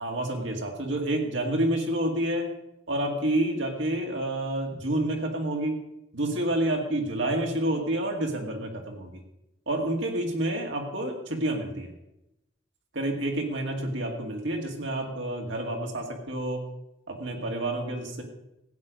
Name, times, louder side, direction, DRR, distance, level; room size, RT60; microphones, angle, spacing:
voice 1, 0.0-2.5 2.9-5.8 6.1-9.2 9.7-11.9 12.9-16.6 17.1-18.2, right 1 dB, 60° right, 1 dB, 2.1 m, -29 dB
15.0 x 8.9 x 5.2 m, 0.87 s
head